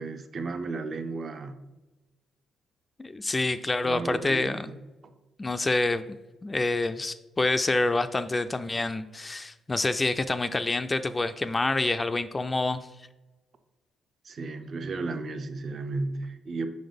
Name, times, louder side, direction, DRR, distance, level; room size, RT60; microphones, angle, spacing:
voice 1, 0.0-1.6 3.8-4.7 5.0-5.1 14.2-16.7, right 3 dB, 45° right, 8 dB, 0.6 m, -34 dB
voice 2, 3.0-4.7 5.4-6.0 6.4-12.8, left 2 dB, 25° left, 10 dB, 0.3 m, -27 dB
5.2 x 3.9 x 5.1 m, 1.1 s
cardioid pair, 90°, 0 cm